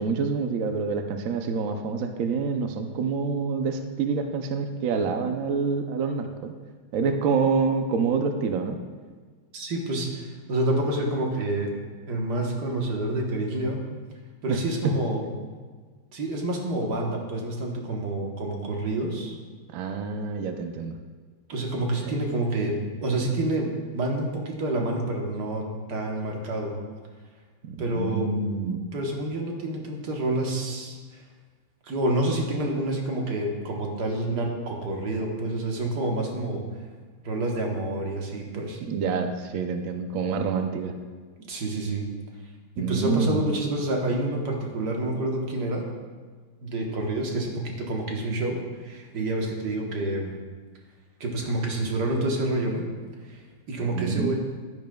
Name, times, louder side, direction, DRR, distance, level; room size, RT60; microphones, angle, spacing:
voice 1, 0.0-6.5 6.9-8.8 14.5-14.6 14.8-15.0 19.7-20.9 27.6-28.9 38.8-40.9 42.8-43.4 53.8-54.3, right 5 dB, 85° right, 6 dB, 0.7 m, -27 dB
voice 2, 9.5-11.7 12.1-13.8 14.4-15.2 16.1-19.4 21.5-25.6 25.9-26.7 27.8-28.3 28.9-31.2 31.8-36.6 37.2-38.8 41.5-42.1 42.8-45.8 46.6-50.3 51.2-52.8 53.2-54.3, right 1 dB, 55° right, 0 dB, 1.7 m, -28 dB
11.0 x 10.0 x 2.3 m, 1.5 s
omnidirectional pair, 2.3 m